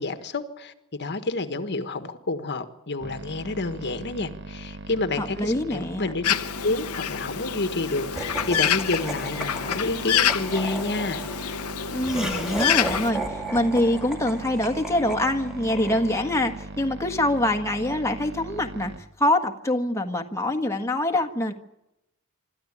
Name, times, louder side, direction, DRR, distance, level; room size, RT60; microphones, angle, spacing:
voice 1, 0.0-6.3 6.6-11.2, left 2 dB, 50° left, 9 dB, 1.4 m, -29 dB
sound 1, 3.0-19.0, right 2 dB, 55° right, 1.3 m, -40 dB
voice 2, 5.2-6.1 11.9-18.9 19.2-21.5, left 1 dB, 15° left, 3 dB, 1.5 m, -25 dB
Bird, 6.2-13.1, left 9 dB, 90° left, 1.0 m, -27 dB
Laughter, 8.2-16.5, right 2 dB, 5° right, 2.4 m, -35 dB
25.5 x 13.5 x 9.9 m, 0.91 s
head